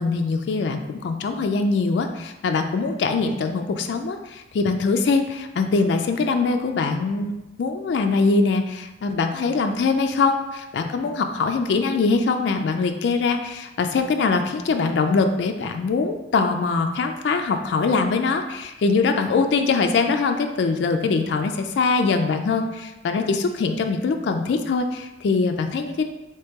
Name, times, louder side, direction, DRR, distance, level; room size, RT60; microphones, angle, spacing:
voice 1, 0.0-26.0, left 4 dB, 75° left, 6 dB, 0.3 m, -22 dB
3.0 x 2.9 x 3.5 m, 1.0 s
head